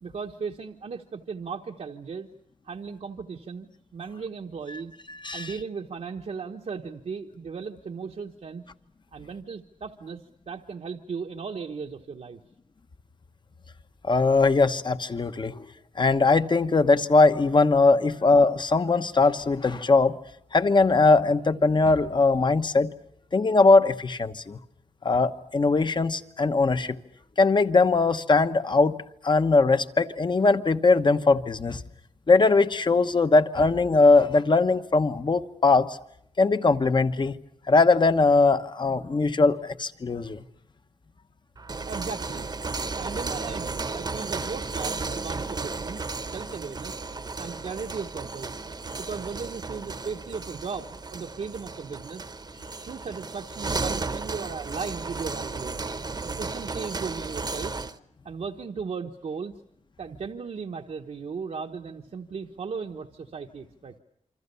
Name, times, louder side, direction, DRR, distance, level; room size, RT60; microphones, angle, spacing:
voice 1, 0.0-2.3 2.6-4.9 5.3-8.6 9.1-12.4 41.9-42.5 43.0-46.0 46.3-47.0 47.4-48.5 49.0-52.2 52.8-55.8 56.2-57.7 58.2-59.5 60.0-63.9, right 5 dB, 65° right, 2 dB, 1.2 m, -36 dB
voice 2, 14.0-15.7 16.0-20.2 20.5-22.9 23.3-24.6 25.0-27.0 27.4-28.9 29.2-31.8 32.3-36.0 36.4-37.4 37.7-40.4, left 3 dB, 40° left, 10 dB, 1.1 m, -20 dB
sound 1, 41.6-58.0, right 3 dB, 35° right, 1.0 m, -34 dB
27.5 x 25.5 x 7.0 m, 0.76 s
wide cardioid pair, 120°, 12 cm